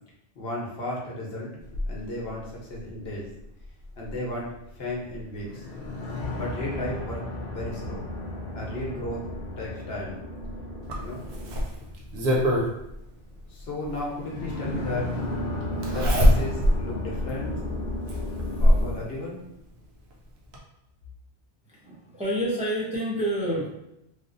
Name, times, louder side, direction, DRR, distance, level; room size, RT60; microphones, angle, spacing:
voice 1, 0.4-3.3 4.0-5.6 6.3-8.1 8.5-9.2 9.6-10.2 11.0-11.3 13.5-15.2 15.8-17.7 18.6-19.4, left 1 dB, 70° left, -3 dB, 1.0 m, -34 dB
sound 1, 1.6-18.9, left 1 dB, 55° left, 0.7 m, -34 dB
Zipper (clothing), 10.9-12.7 14.1-14.2 15.8-16.8 17.3-17.4 18.1-18.9 20.1-20.2 20.5-20.6, equal, 80° right, 0.9 m, -21 dB
voice 2, 21.7-23.7, right 1 dB, 10° right, -6 dB, 0.5 m, -28 dB
3.2 x 2.5 x 2.5 m, 0.83 s
omnidirectional pair, 1.1 m